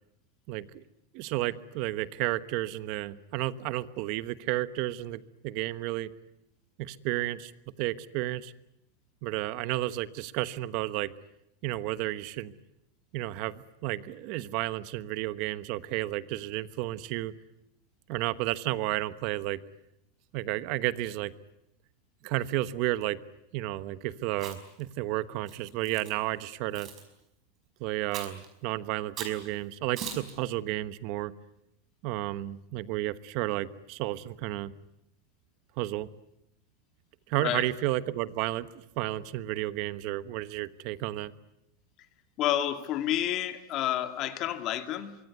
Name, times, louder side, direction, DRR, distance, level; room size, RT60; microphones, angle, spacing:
voice 1, 0.5-0.8 1.1-6.1 6.8-7.5 7.8-8.5 9.2-11.1 11.6-12.5 13.1-17.3 18.1-19.6 20.3-21.3 22.2-23.2 23.5-26.9 27.8-31.3 32.0-34.7 35.8-36.1 37.3-38.7 39.0-41.3, right 16 dB, 45° right, 15 dB, 1.2 m, -32 dB
Chewing mastication, 24.3-24.8 25.5-26.1 26.7-27.0 28.1-28.5 29.2-29.4 30.0-30.3, right 7 dB, 30° right, 5.1 m, -40 dB
voice 2, 37.4-37.7 42.4-45.2, left 12 dB, 35° left, 8 dB, 2.0 m, -30 dB
24.5 x 24.0 x 9.3 m, 0.83 s
supercardioid pair, 155°, 0 cm